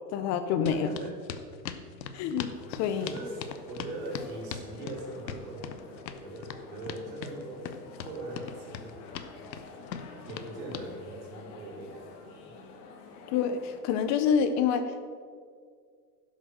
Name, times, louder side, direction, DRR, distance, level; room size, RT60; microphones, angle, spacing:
voice 1, 0.1-0.9 2.1-3.1 13.3-14.9, left 7 dB, 35° left, 9 dB, 0.6 m, -27 dB
sound 1, 0.7-10.9, left 8 dB, 85° left, 1.0 m, -40 dB
voice 2, 0.7-1.2 3.0-7.7 8.0-9.0 10.2-12.1 12.5-12.6, right 2 dB, 60° right, 1 dB, 3.2 m, -41 dB
sound 2, 2.5-13.8, left 3 dB, 65° left, 1.8 m, -49 dB
11.0 x 6.6 x 6.3 m, 2.1 s
hypercardioid pair, 120°, 50 cm